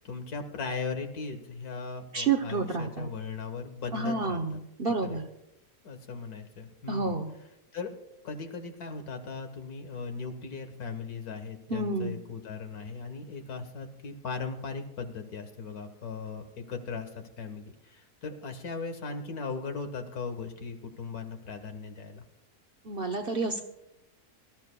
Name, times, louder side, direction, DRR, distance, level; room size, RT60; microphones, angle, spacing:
voice 1, 0.0-4.6 4.9-5.2 5.8-7.2 7.7-7.9 8.2-22.2, left 4 dB, 70° left, 6 dB, 1.9 m, -38 dB
voice 2, 2.1-3.1 3.9-5.3 6.9-7.3 11.7-12.2 22.8-23.6, right 4 dB, 45° right, 4 dB, 1.0 m, -30 dB
24.0 x 13.0 x 2.3 m, 0.88 s
omnidirectional pair, 1.7 m